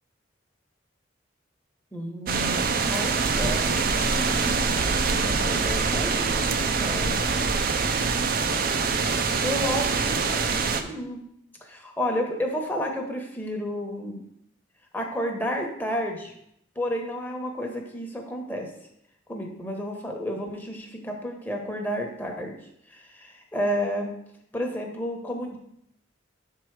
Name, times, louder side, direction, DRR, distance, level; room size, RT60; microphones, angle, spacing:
voice 1, 1.9-3.1 3.4-3.8 4.4-7.4 9.4-10.2 10.5-11.2 11.6-14.2 14.9-16.3 16.8-18.7 19.3-22.6 22.9-24.1 24.5-25.6, equal, 10° left, 2 dB, 1.0 m, -31 dB
sound 1, 2.3-10.8, right 4 dB, 50° right, 0.5 m, -24 dB
7.0 x 4.7 x 4.6 m, 0.75 s
head